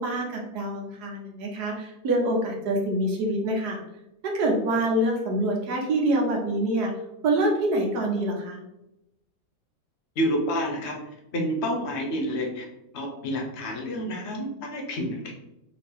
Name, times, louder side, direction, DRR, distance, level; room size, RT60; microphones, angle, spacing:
voice 1, 0.0-3.8 4.3-6.9 7.2-8.6, right 1 dB, 85° right, 0 dB, 1.5 m, -25 dB
voice 2, 10.2-11.0 11.3-12.7 12.9-15.3, equal, 50° left, 0 dB, 1.0 m, -29 dB
4.3 x 2.9 x 3.3 m, 0.87 s
omnidirectional pair, 1.7 m